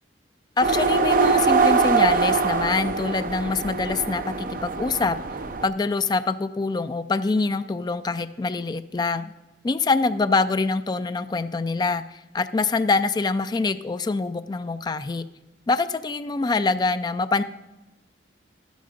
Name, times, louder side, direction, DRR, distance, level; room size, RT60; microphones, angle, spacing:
voice 1, 0.6-5.2 5.6-9.3 9.6-15.2 15.7-17.4, left 3 dB, 25° left, 12 dB, 0.3 m, -25 dB
sound 1, 0.6-5.7, right 4 dB, 50° right, 0.6 m, -22 dB
12.0 x 9.3 x 5.0 m, 1.1 s
head